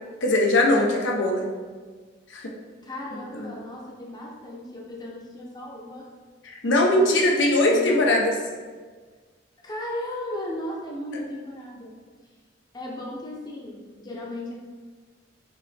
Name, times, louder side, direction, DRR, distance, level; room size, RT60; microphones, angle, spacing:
voice 1, 0.2-1.4 2.3-2.5 3.3-3.5 6.4-8.3, left 1 dB, 85° left, 0 dB, 0.7 m, -21 dB
voice 2, 2.8-6.1 7.7-8.0 9.6-11.9 12.7-14.5, left 1 dB, 20° left, -3 dB, 0.7 m, -35 dB
5.1 x 3.1 x 3.2 m, 1.5 s
head